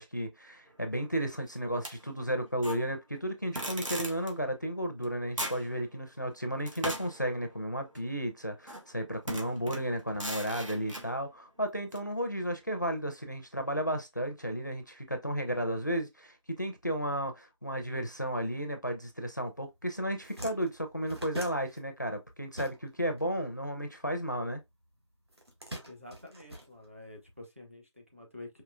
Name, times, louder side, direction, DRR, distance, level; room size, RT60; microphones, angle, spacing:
voice 1, 0.0-24.6, equal, 40° left, 0.6 m, -33 dB
sound 1, 1.8-2.8 3.5-4.3 5.0-5.1 5.4-5.7 6.7-8.1 8.7-8.9 9.3-11.1 11.9-12.0, right 1 dB, 80° right, 1.5 m, -38 dB
sound 2, 19.6-19.8 20.0-23.2 23.5-24.6 25.3-27.3, equal, 55° right, 1.5 m, -45 dB
voice 2, 25.9-28.6, left 2 dB, 25° right, 0.8 m, -48 dB
4.9 x 2.8 x 2.2 m
figure-of-eight pair, 180°, 16 cm